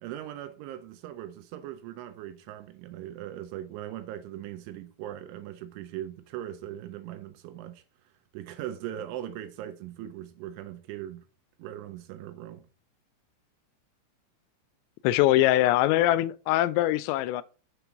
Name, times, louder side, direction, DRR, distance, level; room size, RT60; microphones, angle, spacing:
voice 1, 0.0-7.8 8.3-11.2 11.6-12.7, right 12 dB, 80° right, 2.9 m, -40 dB
voice 2, 15.0-17.4, left 15 dB, 90° left, 3.2 m, -22 dB
7.0 x 5.0 x 5.8 m
omnidirectional pair, 5.8 m